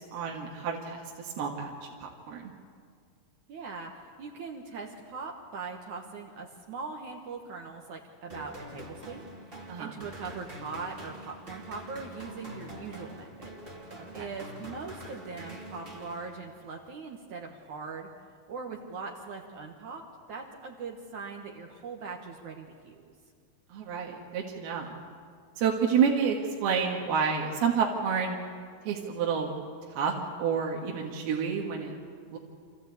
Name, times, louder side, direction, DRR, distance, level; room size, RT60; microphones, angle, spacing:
voice 1, 0.1-1.7 2.0-2.5 9.7-9.9 23.7-25.0 25.6-26.4 26.6-28.4 28.9-29.5 30.0-31.9 32.3-32.4, right 6 dB, 80° right, -1 dB, 3.6 m, -29 dB
voice 2, 3.5-13.5 14.1-18.1 18.5-20.0 20.3-23.0, right 4 dB, 60° right, 1 dB, 2.4 m, -41 dB
sound 1, 8.3-16.7, equal, 20° right, 1.5 m, -45 dB
27.0 x 15.0 x 8.4 m, 2.1 s
omnidirectional pair, 4.5 m